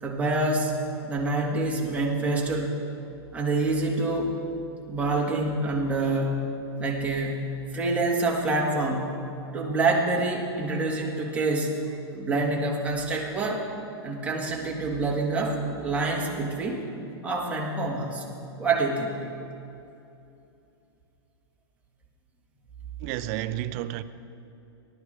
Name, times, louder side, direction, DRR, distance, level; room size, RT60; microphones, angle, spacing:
voice 1, 0.0-0.7 1.0-2.7 3.3-4.3 4.9-9.2 9.5-11.7 12.1-13.6 14.0-16.8 17.2-18.3 18.6-19.2, right 2 dB, 10° right, 1.8 m, -26 dB
voice 2, 23.0-24.0, right 14 dB, 35° right, 0.5 m, -31 dB
19.0 x 13.0 x 3.4 m
hypercardioid pair, 150°, 14 cm